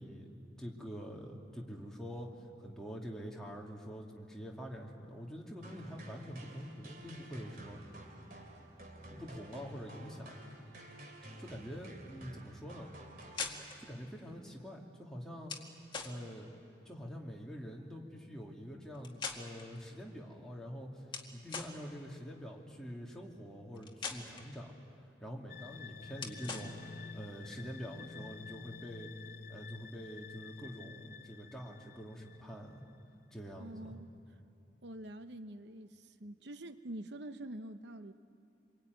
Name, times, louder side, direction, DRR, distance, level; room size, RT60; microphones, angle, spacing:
voice 1, 0.0-2.3 2.6-7.8 9.1-10.3 11.4-12.9 13.8-15.5 16.0-16.5 16.8-21.0 21.3-24.8 25.2-29.1 29.5-32.8 33.3-34.0, equal, 5° left, -2 dB, 2.4 m, -46 dB
sound 1, 5.6-14.0, right 1 dB, 50° right, 3.2 m, -52 dB
sound 2, 13.2-13.8 15.4-16.2 18.9-19.8 21.1-21.8 23.7-24.5 26.2-26.7, left 5 dB, 25° left, 1.9 m, -41 dB
sound 3, 25.5-33.0, left 5 dB, 50° left, 0.6 m, -50 dB
voice 2, 33.6-34.1 34.8-38.1, right 1 dB, 75° right, 9 dB, 0.9 m, -46 dB
26.5 x 22.5 x 9.4 m, 2.5 s
head